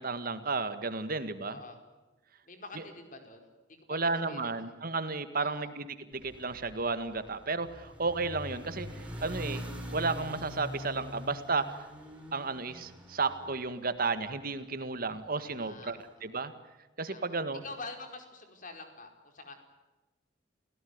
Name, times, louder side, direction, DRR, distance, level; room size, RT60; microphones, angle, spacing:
voice 1, 0.0-1.6 3.9-9.6 9.9-11.9 12.3-16.5 17.0-17.6, right 3 dB, 55° right, 11 dB, 1.8 m, -33 dB
voice 2, 1.4-1.8 2.4-3.5 3.9-4.5 5.4-5.7 15.4-16.5 17.1-19.5, left 3 dB, 45° left, 6 dB, 4.7 m, -47 dB
sound 1, 6.1-14.5, equal, 10° right, 6.3 m, -44 dB
29.5 x 17.5 x 9.6 m, 1.1 s
head